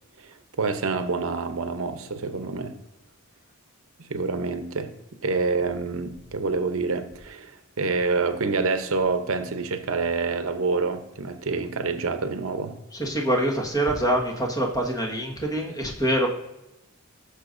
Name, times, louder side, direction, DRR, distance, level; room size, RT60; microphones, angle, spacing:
voice 1, 0.2-2.8 4.0-4.9 5.2-12.7, right 4 dB, 70° right, 8 dB, 0.8 m, -27 dB
voice 2, 13.0-16.3, right 1 dB, 15° left, 0 dB, 1.5 m, -25 dB
15.5 x 6.8 x 2.6 m, 0.93 s
head